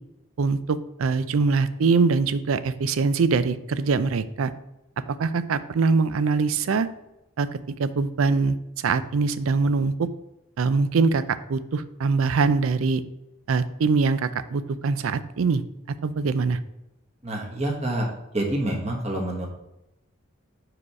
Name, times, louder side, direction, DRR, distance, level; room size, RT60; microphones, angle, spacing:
voice 1, 0.4-4.5 5.1-6.9 7.4-10.1 10.6-13.0 13.5-15.6 15.9-16.6, right 4 dB, 80° right, 14 dB, 0.4 m, -23 dB
voice 2, 17.2-18.1 18.3-19.5, right 1 dB, 30° right, 0 dB, 1.3 m, -27 dB
4.9 x 4.8 x 5.7 m, 0.92 s
head